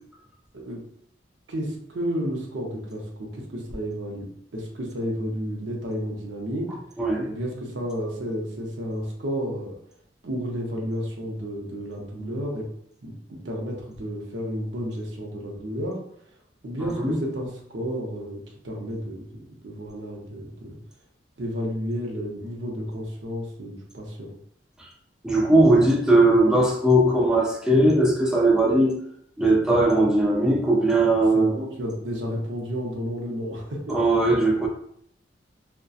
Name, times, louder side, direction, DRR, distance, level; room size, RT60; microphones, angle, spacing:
voice 1, 1.5-6.8 7.3-9.8 10.2-12.7 13.0-16.0 16.6-19.3 19.6-20.7 21.4-24.3 31.1-34.0, equal, 80° right, -1 dB, 0.6 m, -32 dB
voice 2, 16.8-17.2 24.8-24.9 25.2-29.0 29.4-31.6 33.9-34.7, right 1 dB, 5° right, -2 dB, 0.4 m, -19 dB
2.6 x 2.1 x 2.3 m, 0.68 s
head